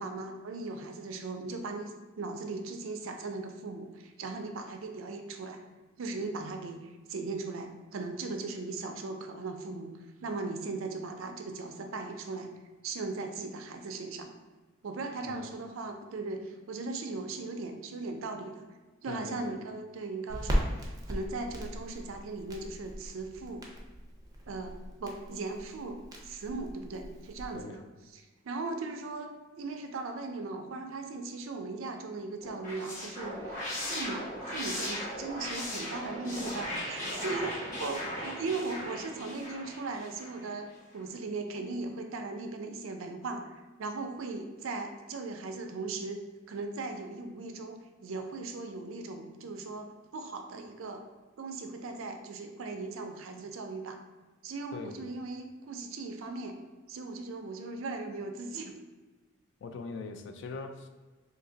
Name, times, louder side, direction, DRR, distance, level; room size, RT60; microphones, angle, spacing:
voice 1, 0.0-5.6 6.0-9.9 10.2-12.5 12.8-14.3 14.8-18.6 19.0-23.7 24.5-27.8 28.1-40.7 40.9-43.5 43.8-51.0 51.4-54.0 54.4-56.6 56.9-58.7, right 3 dB, 80° right, 5 dB, 0.4 m, -38 dB
voice 2, 19.1-19.6 27.5-27.8 54.7-55.0 59.6-60.9, left 4 dB, 60° left, 7 dB, 0.3 m, -41 dB
Crackle, 20.3-27.6, equal, 20° right, 0.4 m, -38 dB
sound 1, 32.4-40.5, left 1 dB, 40° left, 0.9 m, -38 dB
2.8 x 2.6 x 3.8 m, 1.3 s
head